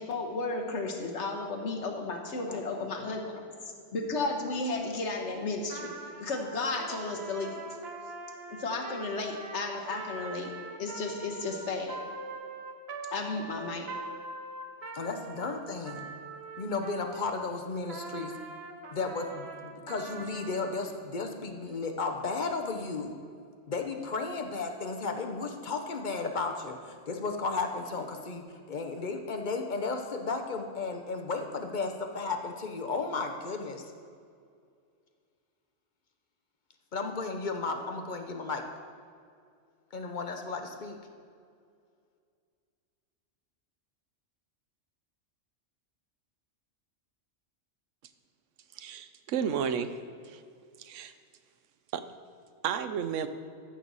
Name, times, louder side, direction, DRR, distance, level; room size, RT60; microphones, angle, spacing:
voice 1, 0.0-3.2 3.9-5.9 6.2-7.6 8.5-10.5 10.8-12.0 13.1-13.9, left 3 dB, 70° left, 2 dB, 1.4 m, -33 dB
voice 2, 2.5-2.9 14.9-16.1 16.6-18.3 18.9-23.1 23.7-33.9 36.9-38.6 39.9-41.0, left 4 dB, 45° left, 4 dB, 0.8 m, -34 dB
Trumpet, 5.6-17.4 17.9-20.9, right 3 dB, 60° right, 1.1 m, -43 dB
voice 3, 48.8-49.9 50.3-50.4 50.8-51.1 51.9-52.1 52.6-53.3, right 8 dB, 90° right, 11 dB, 1.0 m, -32 dB
14.0 x 6.3 x 4.0 m, 2.3 s
omnidirectional pair, 1.2 m